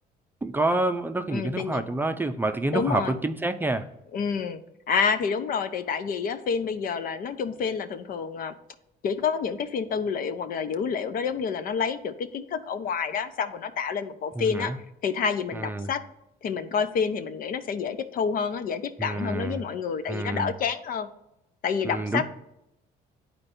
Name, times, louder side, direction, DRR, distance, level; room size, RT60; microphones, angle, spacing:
voice 1, 0.4-3.9 14.4-14.8 15.5-15.9 19.0-19.6 20.1-20.5 21.8-22.2, right 2 dB, 10° right, 0.5 m, -28 dB
voice 2, 1.3-1.8 2.7-3.1 4.1-4.6 4.9-8.5 9.0-14.7 15.0-16.0 16.4-21.1 21.6-22.2, left 6 dB, 55° left, 0.7 m, -28 dB
10.5 x 4.4 x 2.7 m
cardioid pair, 110°, 17 cm